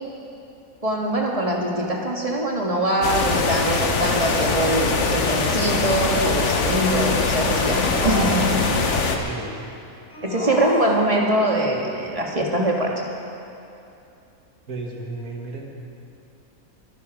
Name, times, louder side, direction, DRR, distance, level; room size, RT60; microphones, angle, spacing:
voice 1, 0.8-8.4 8.7-8.8 10.2-12.9, right 1 dB, 25° right, -1 dB, 1.9 m, -23 dB
sound 1, 3.0-9.2, left 4 dB, 55° left, 1.4 m, -22 dB
sound 2, 7.7-9.0 10.1-11.4, right 1 dB, 75° left, 2.8 m, -31 dB
voice 2, 9.2-9.6 14.7-15.7, right 2 dB, 80° right, -1 dB, 2.4 m, -33 dB
22.0 x 10.5 x 4.8 m, 2.7 s
omnidirectional pair, 1.5 m